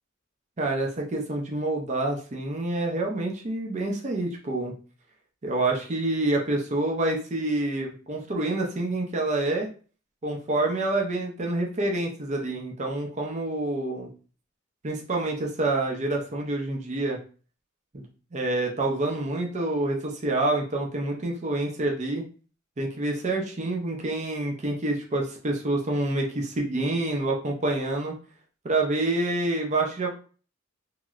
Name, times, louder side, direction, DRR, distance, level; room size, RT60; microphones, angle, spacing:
voice 1, 0.6-4.7 5.4-9.7 10.2-14.1 14.8-17.2 17.9-18.0 18.3-22.2 22.8-28.1 28.6-30.1, right 2 dB, 35° right, 0 dB, 0.6 m, -27 dB
3.0 x 2.8 x 2.4 m, 0.38 s
head